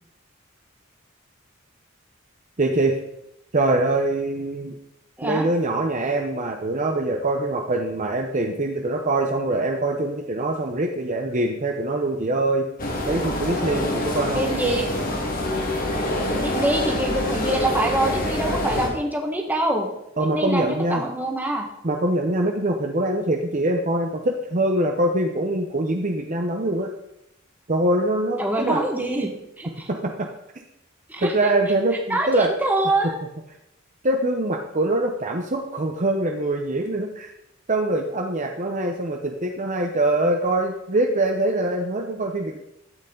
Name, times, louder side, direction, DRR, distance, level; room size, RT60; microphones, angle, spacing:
voice 1, 2.6-2.9 3.5-4.7 5.2-12.7 13.0-14.5 20.2-21.0 21.8-26.9 27.7-28.8 29.9-30.3 31.2-32.5 34.0-37.3 37.7-42.6, right 2 dB, 35° right, 3 dB, 0.8 m, -23 dB
sound 1, 12.8-18.9, left 1 dB, 40° left, 1.8 m, -26 dB
voice 2, 14.3-14.8 16.4-19.9 20.3-21.6 28.4-29.3 29.6-29.9 31.1-31.3 32.1-33.2, right 1 dB, 10° right, 1 dB, 1.5 m, -24 dB
12.0 x 8.2 x 3.9 m, 0.84 s
head